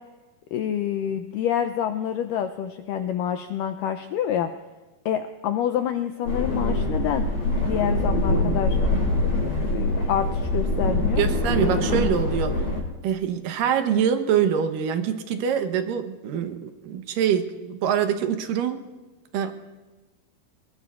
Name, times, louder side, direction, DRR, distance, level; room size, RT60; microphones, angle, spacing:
voice 1, 0.5-4.5 5.1-7.3 7.6-8.8 9.7-11.2, left 9 dB, 90° left, 8 dB, 1.9 m, -27 dB
sound 1, 6.3-12.8, left 2 dB, 75° left, 6.5 m, -24 dB
voice 2, 11.2-12.5 13.0-18.8 19.3-19.5, right 8 dB, 70° right, 7 dB, 2.4 m, -24 dB
26.5 x 20.5 x 2.5 m, 1.2 s
omnidirectional pair, 4.5 m